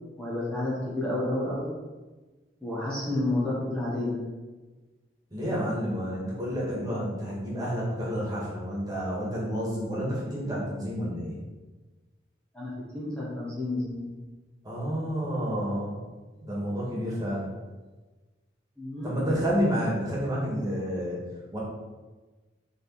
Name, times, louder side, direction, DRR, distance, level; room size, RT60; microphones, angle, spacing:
voice 1, 0.2-1.7 2.6-4.2 12.5-14.1 18.8-19.2, left 1 dB, 5° left, -8 dB, 1.5 m, -30 dB
voice 2, 5.3-11.4 14.6-16.0 16.4-17.5 19.0-21.3 21.5-21.6, equal, 20° right, -6 dB, 2.2 m, -30 dB
7.9 x 3.9 x 4.3 m, 1.2 s
head